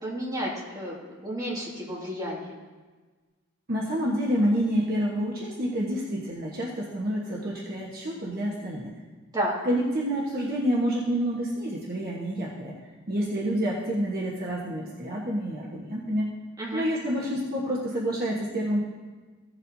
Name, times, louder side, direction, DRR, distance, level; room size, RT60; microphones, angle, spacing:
voice 1, 0.0-1.0 1.2-2.5 9.3-9.5 16.6-16.8, equal, 20° right, -5 dB, 2.2 m, -31 dB
voice 2, 3.7-8.9 9.6-12.7 13.1-16.3 16.7-18.8, equal, 50° right, -5 dB, 1.2 m, -28 dB
15.5 x 7.4 x 2.7 m, 1.4 s
head